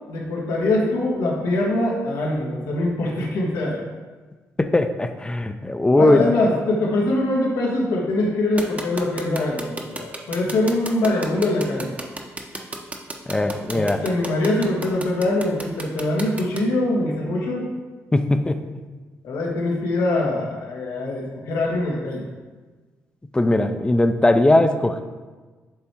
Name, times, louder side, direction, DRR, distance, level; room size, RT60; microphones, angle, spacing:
voice 1, 0.1-3.8 6.0-12.0 13.7-17.7 19.2-22.3, left 2 dB, 85° left, -2 dB, 1.4 m, -23 dB
voice 2, 4.6-6.3 13.3-14.0 18.1-18.6 23.3-25.0, left 1 dB, 15° left, 8 dB, 0.5 m, -19 dB
sound 1, 8.6-16.6, right 2 dB, 25° right, 0.8 m, -32 dB
7.3 x 3.4 x 4.5 m, 1.3 s
cardioid pair, 75°, 6 cm